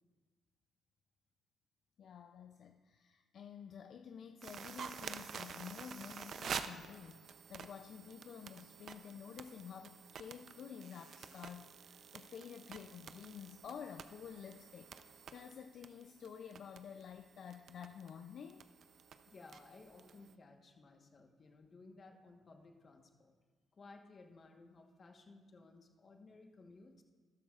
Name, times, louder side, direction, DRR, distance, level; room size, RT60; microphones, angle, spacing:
voice 1, 2.0-18.6, left 7 dB, 60° left, 7 dB, 0.4 m, -51 dB
sound 1, 4.4-20.3, right 6 dB, 60° right, 0.5 m, -49 dB
voice 2, 19.3-23.4 23.7-27.0, left 3 dB, 40° left, 3 dB, 1.2 m, -58 dB
13.0 x 12.0 x 2.4 m, 1.5 s
cardioid pair, 90°, 0 cm